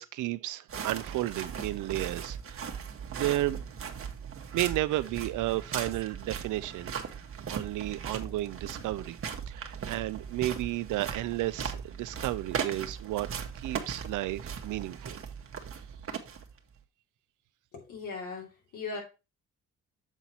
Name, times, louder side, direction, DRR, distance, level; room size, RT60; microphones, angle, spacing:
voice 1, 0.0-2.8 3.1-3.6 4.5-6.9 7.5-9.2 9.5-13.3 13.5-15.2, right 16 dB, 80° right, 0.6 m, -33 dB
sound 1, 0.7-16.7, right 7 dB, 45° right, 1.1 m, -38 dB
voice 2, 17.7-19.0, left 4 dB, 85° left, 2.9 m, -39 dB
7.3 x 4.1 x 4.3 m
cardioid pair, 90°, 30 cm